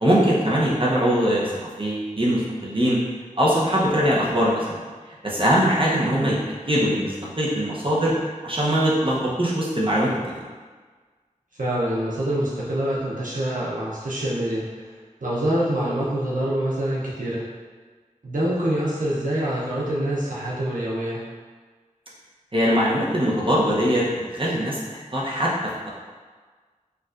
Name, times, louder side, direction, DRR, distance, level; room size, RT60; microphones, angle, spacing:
voice 1, 0.0-3.0 3.4-4.7 5.2-6.4 6.7-8.1 8.4-10.1 22.5-25.5, equal, 40° right, -6 dB, 0.7 m, -21 dB
voice 2, 11.6-14.6 15.2-17.4 18.2-21.2, right 1 dB, 75° right, -7 dB, 0.6 m, -25 dB
4.5 x 2.4 x 2.4 m, 1.5 s
wide cardioid pair, 40°, 14 cm